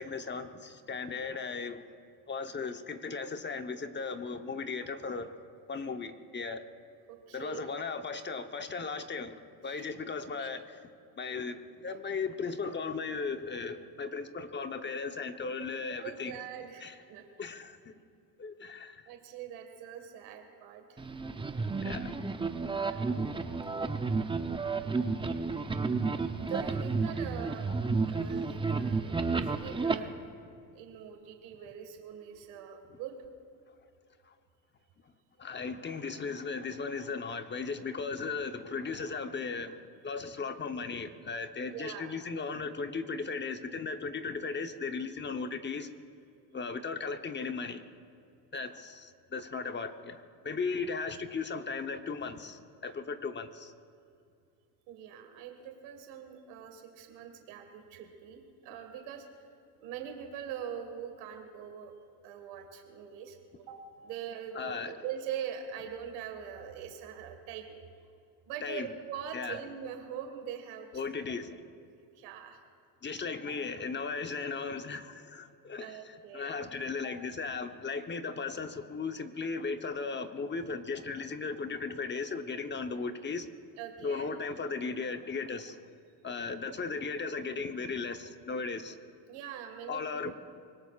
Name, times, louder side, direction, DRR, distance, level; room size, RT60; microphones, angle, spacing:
voice 1, 0.0-1.8 2.3-5.3 5.7-6.7 7.3-10.8 11.2-16.4 16.8-16.9 17.4-18.0 18.4-19.1 21.8-22.2 30.1-30.2 34.3-34.4 35.4-39.8 40.0-45.9 46.5-47.8 48.5-53.7 64.5-65.0 68.6-68.9 69.3-69.6 70.9-71.7 73.0-83.5 84.0-85.8 86.2-89.0 89.9-90.3, left 4 dB, 25° left, 8 dB, 0.9 m, -36 dB
voice 2, 7.1-7.7 9.6-9.8 10.4-10.5 11.9-12.0 15.6-17.5 19.1-21.0 22.8-23.4 25.0-25.4 26.4-27.8 28.1-30.1 30.7-33.2 41.6-42.1 54.9-59.3 59.8-61.9 62.2-68.1 68.5-70.9 71.6-71.7 72.1-72.6 75.8-76.6 77.0-77.1 83.8-84.3 89.3-90.3, right 8 dB, 85° right, 4 dB, 1.8 m, -43 dB
sound 1, 21.0-30.0, right 4 dB, 10° right, 0.7 m, -31 dB
25.0 x 19.5 x 2.4 m, 2.4 s
supercardioid pair, 95°, 41 cm